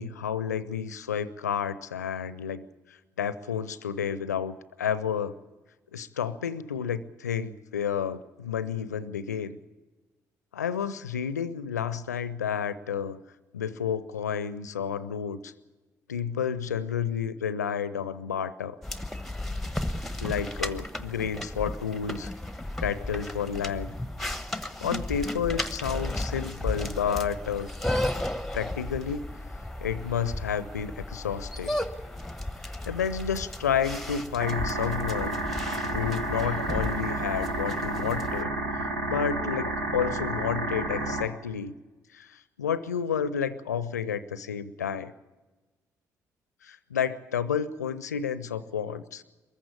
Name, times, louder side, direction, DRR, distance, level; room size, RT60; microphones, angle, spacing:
voice 1, 0.0-5.3 5.9-9.6 10.5-13.2 13.5-15.5 16.1-18.8 20.2-22.3 22.8-23.9 24.6-27.7 28.5-29.3 29.8-31.8 32.9-35.4 35.9-38.5 39.0-41.8 42.1-45.1 46.6-49.2, left 7 dB, 80° left, 16 dB, 0.6 m, -30 dB
sound 1, 18.8-38.4, left 1 dB, ahead, 1.1 m, -34 dB
sound 2, 34.4-41.2, right 2 dB, 80° right, 1.4 m, -31 dB
23.0 x 15.0 x 8.5 m, 1.2 s
figure-of-eight pair, 40°, 9 cm